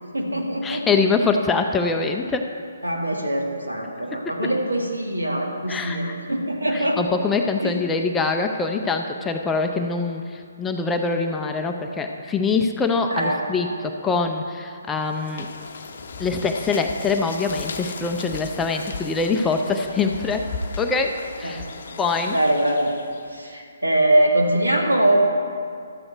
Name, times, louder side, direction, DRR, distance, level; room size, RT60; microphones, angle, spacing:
voice 1, 0.0-0.9 2.8-7.0 7.6-7.7 13.1-13.4 21.4-21.6 22.3-22.9 23.3-25.3, right 1 dB, 85° right, 1 dB, 1.7 m, -22 dB
voice 2, 0.6-2.5 4.1-4.3 5.7-6.1 6.7-15.5 16.2-20.4 20.8-21.6 22.0-22.4, left 4 dB, 10° left, 4 dB, 0.5 m, -24 dB
sound 1, 15.0-23.4, left 4 dB, 50° left, 0.7 m, -36 dB
12.5 x 7.9 x 4.4 m, 2.2 s
figure-of-eight pair, 135°, 0 cm